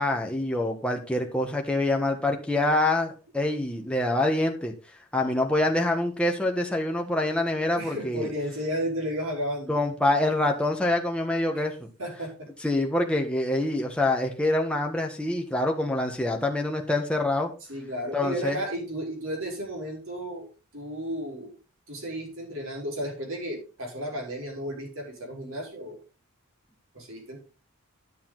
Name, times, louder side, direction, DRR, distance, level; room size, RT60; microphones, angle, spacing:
voice 1, 0.0-4.7 5.1-8.3 9.7-11.9 12.6-17.5 18.1-18.6, left 2 dB, 5° left, 1 dB, 1.4 m, -26 dB
voice 2, 7.8-9.7 12.0-12.3 17.7-20.5 20.7-21.6 21.9-26.0 26.9-27.4, equal, 65° right, 0 dB, 4.7 m, -33 dB
11.0 x 7.0 x 4.0 m, 0.34 s
head